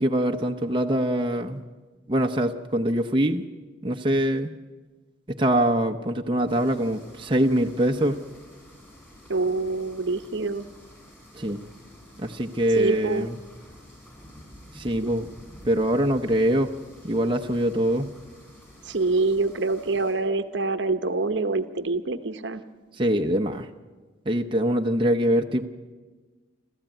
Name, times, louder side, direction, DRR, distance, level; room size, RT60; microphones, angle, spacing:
voice 1, 0.0-1.6 2.1-3.4 3.8-4.5 5.3-8.2 11.3-11.6 12.2-13.4 14.7-15.3 15.7-16.7 17.0-18.1 23.0-23.7 24.3-25.7, right 1 dB, 25° right, 4 dB, 0.8 m, -23 dB
sound 1, 6.5-20.1, equal, 10° left, 7.0 m, -49 dB
voice 2, 9.3-10.7 12.8-13.3 18.8-22.6, right 3 dB, 65° right, 11 dB, 0.9 m, -25 dB
28.5 x 13.5 x 9.1 m, 1.4 s
head